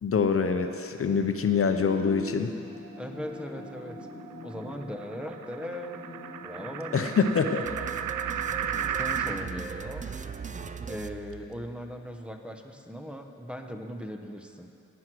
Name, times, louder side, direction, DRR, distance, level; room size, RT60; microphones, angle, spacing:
voice 1, 0.0-2.5 6.9-7.7 8.6-8.8, left 5 dB, 45° left, 6 dB, 0.7 m, -25 dB
sound 1, 1.6-10.4, left 3 dB, 25° left, 1.1 m, -45 dB
sound 2, 2.7-9.5, right 8 dB, 85° right, 0.5 m, -35 dB
voice 2, 3.0-4.1 4.4-6.2 6.4-7.3 8.2-8.5 8.9-10.1 10.9-14.7, equal, 5° right, 4 dB, 0.8 m, -39 dB
sound 3, 7.7-12.0, right 6 dB, 25° right, 0.4 m, -39 dB
18.0 x 6.2 x 6.0 m, 2.5 s
wide cardioid pair, 135°, 31 cm